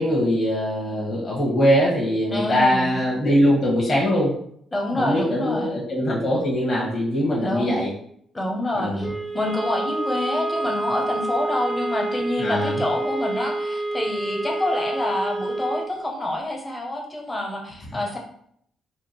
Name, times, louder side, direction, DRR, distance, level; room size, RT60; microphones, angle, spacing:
voice 1, 0.0-4.3 4.9-7.9 8.7-9.1 12.4-12.8, equal, 40° left, -5 dB, 1.3 m, -22 dB
voice 2, 2.3-3.0 4.7-5.8 7.4-7.8 8.3-18.2, left 1 dB, 20° left, 0 dB, 0.9 m, -27 dB
sound 1, 9.0-16.0, right 2 dB, 5° right, 0.4 m, -28 dB
3.5 x 2.4 x 4.3 m, 0.67 s
cardioid pair, 90°, 0 cm